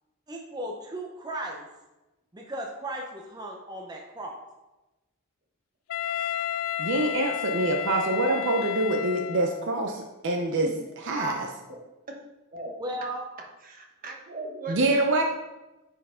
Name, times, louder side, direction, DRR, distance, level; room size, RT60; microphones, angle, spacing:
voice 1, 0.3-1.6 2.3-4.3 11.2-11.4 12.8-13.2, right 1 dB, 20° right, 0 dB, 0.8 m, -35 dB
Wind instrument woodwind instrument, 5.9-9.7, left 11 dB, 75° left, 0.3 m, -32 dB
voice 2, 6.8-9.9 10.2-10.7 11.1-11.5 14.7-15.2, right 2 dB, 60° right, 2 dB, 0.7 m, -25 dB
voice 3, 10.6-10.9 11.7-11.8 12.1-12.2 12.5-12.7 13.6-15.2, right 2 dB, 40° right, 1 dB, 1.2 m, -38 dB
9.7 x 4.7 x 3.7 m, 1.0 s
head